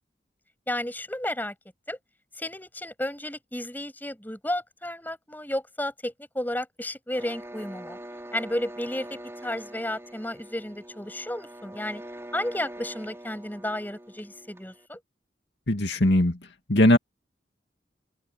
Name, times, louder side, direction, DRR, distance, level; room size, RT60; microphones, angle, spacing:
voice 1, 0.7-1.5 1.9-2.0 2.4-8.0 8.3-12.0 12.3-15.0, left 1 dB, 10° left, 7.3 m, -32 dB
sound 1, 7.1-14.9, right 1 dB, 15° right, 4.7 m, -43 dB
voice 2, 15.7-16.4 16.7-17.0, left 1 dB, 70° left, 2.4 m, -19 dB
head